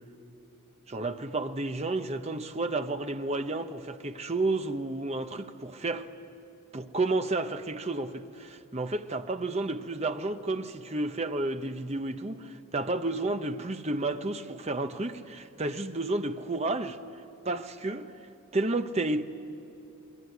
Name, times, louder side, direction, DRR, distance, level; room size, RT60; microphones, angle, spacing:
voice 1, 0.9-6.1 6.7-17.0 17.4-18.1 18.5-19.2, right 2 dB, 30° right, 0.9 m, -31 dB
27.5 x 21.5 x 9.6 m
head